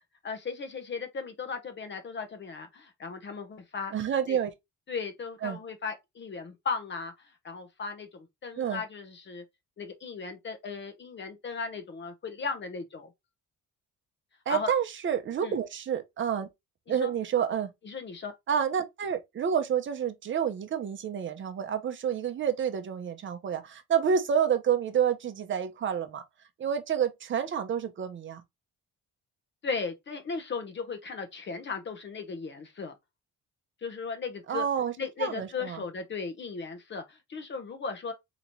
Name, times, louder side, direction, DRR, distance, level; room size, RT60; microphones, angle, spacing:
voice 1, 0.2-3.9 4.3-4.4 4.9-9.4 9.8-13.1 14.5-14.7 15.4-15.6 16.9-17.1 17.8-18.3 29.6-32.9 33.8-34.7 35.0-38.1, left 5 dB, 35° left, 0.7 m, -36 dB
voice 2, 3.9-4.5 5.4-5.6 8.6-8.8 14.5-16.5 16.9-17.7 18.5-26.2 26.6-28.4 34.5-34.9 35.2-35.8, right 8 dB, 35° right, 0.7 m, -29 dB
3.9 x 3.0 x 2.9 m
cardioid pair, 155°, 33 cm